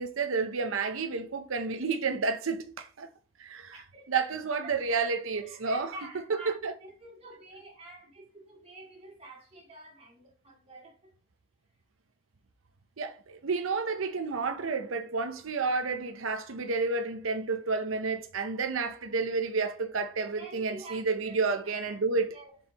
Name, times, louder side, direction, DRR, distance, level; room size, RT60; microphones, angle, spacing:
voice 1, 0.0-3.1 3.4-3.7 4.1-5.9 6.5-6.7 13.0-22.4, right 4 dB, 90° right, 0.7 m, -30 dB
voice 2, 3.7-4.2 4.6-5.0 5.3-6.6 6.8-11.1 20.4-22.0 22.3-22.6, right 2 dB, 30° right, 2.4 m, -48 dB
6.9 x 4.7 x 2.9 m
head